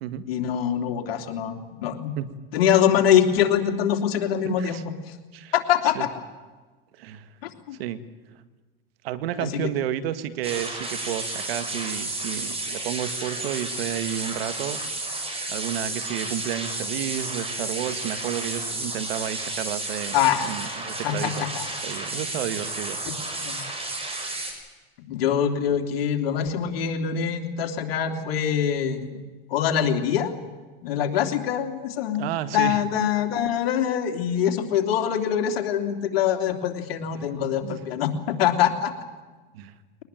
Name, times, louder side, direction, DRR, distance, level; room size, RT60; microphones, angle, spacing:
voice 1, 0.3-2.1 2.5-4.8 5.5-6.1 7.4-7.8 9.4-9.7 20.1-20.5 21.0-21.6 23.4-23.6 25.1-29.2 29.5-30.3 30.8-32.3 32.5-38.9, left 9 dB, 75° left, 5 dB, 3.1 m, -24 dB
voice 2, 4.4-4.8 5.3-5.5 6.0-6.1 7.0-7.3 7.8-8.0 9.0-14.8 15.5-20.2 20.4-21.5 21.8-23.0 32.2-32.8 37.0-37.3 37.6-37.8 39.5-39.7, right 11 dB, 75° right, 12 dB, 1.9 m, -31 dB
sound 1, 10.4-24.5, right 2 dB, 20° right, 6.4 m, -32 dB
22.5 x 19.5 x 9.1 m, 1.3 s
hypercardioid pair, 105°, 30 cm